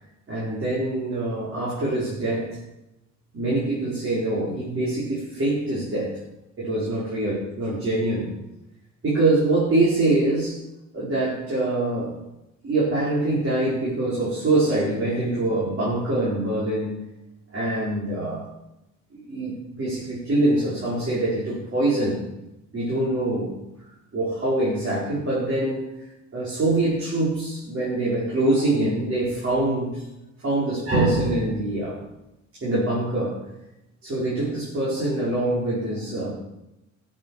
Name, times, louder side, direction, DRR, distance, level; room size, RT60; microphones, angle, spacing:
voice 1, 0.3-2.6 3.3-6.2 6.6-8.3 9.0-10.6 10.9-12.2 12.6-17.0 17.5-18.5 19.1-22.2 22.7-23.6 24.1-26.1 26.3-30.0 30.4-32.0 32.5-33.4 34.0-36.3, right 2 dB, 45° right, -7 dB, 5.1 m, -24 dB
14.0 x 7.7 x 6.5 m, 0.92 s
cardioid pair, 90°, 30 cm